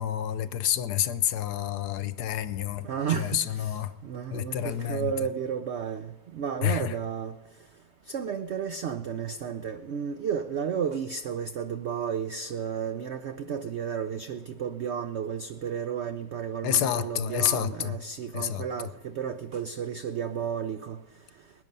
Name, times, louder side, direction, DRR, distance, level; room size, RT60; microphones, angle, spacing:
voice 1, 0.0-2.9 3.2-3.9 4.3-5.1 6.6-6.9 16.6-17.9 18.3-18.6, left 11 dB, 75° left, 13 dB, 1.2 m, -28 dB
voice 2, 2.8-7.4 8.1-21.0, right 8 dB, 75° right, 9 dB, 0.6 m, -32 dB
21.5 x 9.7 x 5.4 m, 1.1 s
omnidirectional pair, 1.8 m